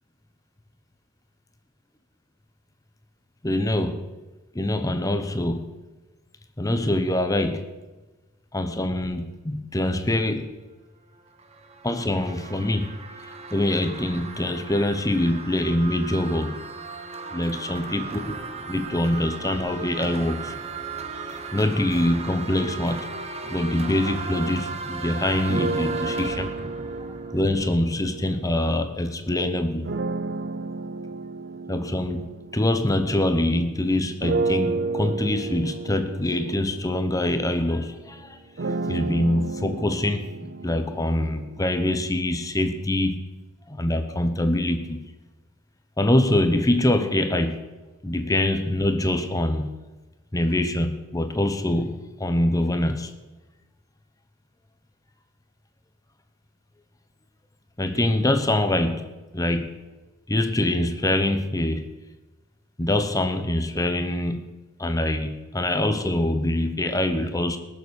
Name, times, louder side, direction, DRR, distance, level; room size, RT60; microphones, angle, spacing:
voice 1, 3.4-4.1 4.5-5.7 6.6-7.7 8.5-10.5 11.8-12.9 13.5-16.6 17.3-18.4 18.7-20.5 21.5-23.1 23.5-26.5 27.3-29.9 31.7-32.3 32.5-38.4 38.9-43.2 43.7-45.0 46.0-47.6 48.0-49.7 50.3-53.1 57.8-59.1 59.3-59.7 60.3-61.9 62.8-64.5 64.8-67.6, left 1 dB, 15° left, 8 dB, 1.0 m, -24 dB
sound 1, 11.1-28.1, right 4 dB, 30° right, 1.3 m, -36 dB
sound 2, 25.5-29.0 29.8-33.6 34.2-42.2, right 3 dB, 55° right, 0.7 m, -32 dB
19.0 x 7.1 x 6.4 m, 1.2 s
head